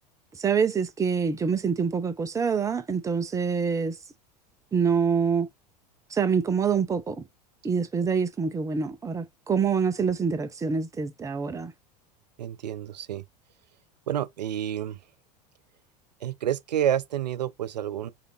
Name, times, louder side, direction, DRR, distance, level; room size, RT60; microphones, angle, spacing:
voice 1, 0.3-4.0 4.7-5.5 6.1-7.2 7.6-11.7, right 6 dB, 15° right, 0.6 m, -26 dB
voice 2, 12.4-13.2 14.1-15.0 16.2-18.1, right 10 dB, 80° right, 0.5 m, -29 dB
5.0 x 2.6 x 2.9 m
hypercardioid pair, 85°, 21 cm